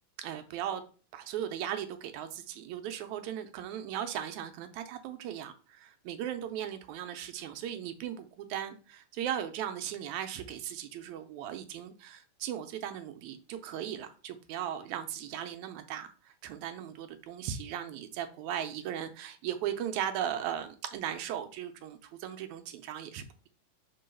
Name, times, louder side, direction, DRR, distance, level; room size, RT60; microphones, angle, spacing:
voice 1, 0.2-0.8 1.1-23.5, right 10 dB, 85° right, 2.0 m, -37 dB
4.6 x 3.8 x 5.5 m
omnidirectional pair, 3.4 m